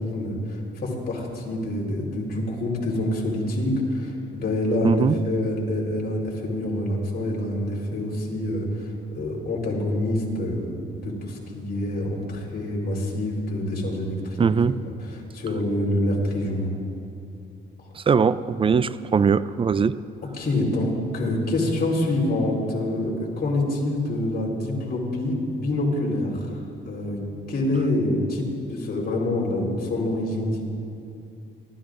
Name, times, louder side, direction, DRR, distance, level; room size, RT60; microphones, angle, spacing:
voice 1, 0.0-14.5 14.8-16.7 20.4-26.6 26.8-27.2 27.5-30.6, left 1 dB, 50° left, -2 dB, 4.1 m, -26 dB
voice 2, 4.8-5.2 14.4-14.8 18.0-20.0, right 6 dB, 25° right, 15 dB, 0.4 m, -21 dB
29.0 x 14.0 x 2.6 m, 2.6 s
cardioid pair, 90°, 20 cm